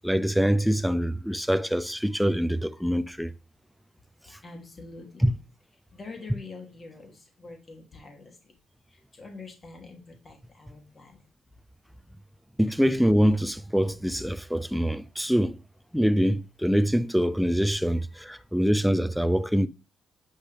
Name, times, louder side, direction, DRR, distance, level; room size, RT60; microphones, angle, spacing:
voice 1, 0.0-3.3 4.3-4.4 5.2-5.3 12.6-15.6 15.9-19.7, equal, ahead, 0.6 m, -24 dB
voice 2, 2.0-2.4 4.4-5.3 5.9-8.5 8.9-11.2 18.1-18.4, left 3 dB, 30° left, 2.8 m, -45 dB
9.1 x 5.6 x 3.4 m
cardioid pair, 90°, 0 cm